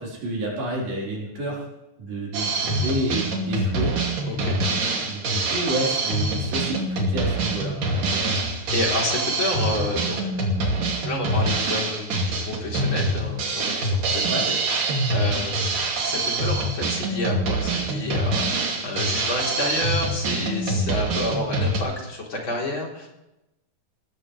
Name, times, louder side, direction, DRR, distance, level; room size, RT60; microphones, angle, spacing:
voice 1, 0.0-1.6 2.0-3.9 5.0-7.7 8.0-8.3 14.3-14.4, right 1 dB, 85° right, -4 dB, 6.2 m, -29 dB
Drum kit, 2.3-21.8, right 2 dB, 70° right, 4.1 m, -25 dB
voice 2, 4.2-4.6 8.1-8.2 8.7-10.5 11.0-14.8 15.1-23.1, left 1 dB, 35° left, -2 dB, 4.3 m, -30 dB
20.5 x 19.0 x 3.4 m, 0.94 s
omnidirectional pair, 4.0 m